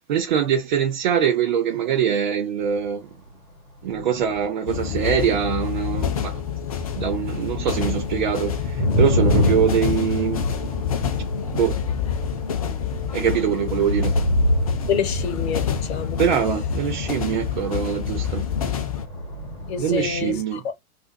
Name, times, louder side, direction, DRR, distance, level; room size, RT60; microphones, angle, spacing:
voice 1, 0.1-3.1 3.8-6.4 7.0-10.5 11.5-11.8 13.1-14.2 16.2-18.4 19.8-20.6, right 8 dB, 35° right, 0.5 m, -23 dB
sound 1, 2.6-2.7 7.3-7.4 7.7-20.0, left 1 dB, 10° left, 1.7 m, -27 dB
sound 2, 4.7-19.1, left 8 dB, 30° left, 0.3 m, -28 dB
voice 2, 14.9-16.2 19.3-20.7, left 7 dB, 45° left, 1.1 m, -28 dB
3.6 x 2.6 x 2.5 m
hypercardioid pair, 120°, 44 cm